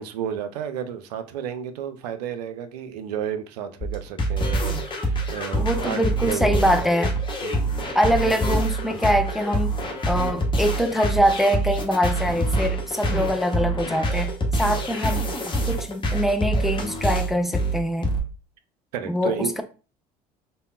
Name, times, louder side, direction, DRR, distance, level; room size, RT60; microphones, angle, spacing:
voice 1, 0.0-6.8 7.4-7.7 18.9-19.6, right 8 dB, 75° right, 0.4 m, -32 dB
sound 1, 3.8-18.2, right 1 dB, 25° left, 0.9 m, -25 dB
voice 2, 5.6-7.2 7.9-9.7 10.1-14.3 14.6-15.3 15.7-18.1 19.1-19.6, equal, ahead, 0.3 m, -23 dB
3.5 x 2.0 x 2.3 m
figure-of-eight pair, 60°, 21 cm